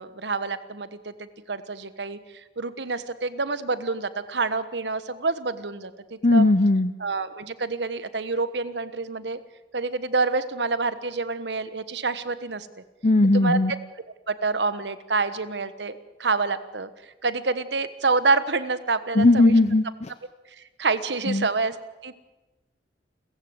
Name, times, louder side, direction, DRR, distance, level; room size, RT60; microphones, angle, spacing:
voice 1, 0.0-6.4 7.0-9.4 9.7-12.7 13.3-13.6 14.3-16.9 17.2-19.5 20.6-21.7 22.0-22.1, right 4 dB, 75° right, 13 dB, 1.3 m, -27 dB
voice 2, 6.2-6.9 13.0-13.7 19.1-20.1 21.3-21.5, left 2 dB, 40° left, 11 dB, 0.8 m, -18 dB
29.0 x 15.5 x 8.0 m, 1.1 s
head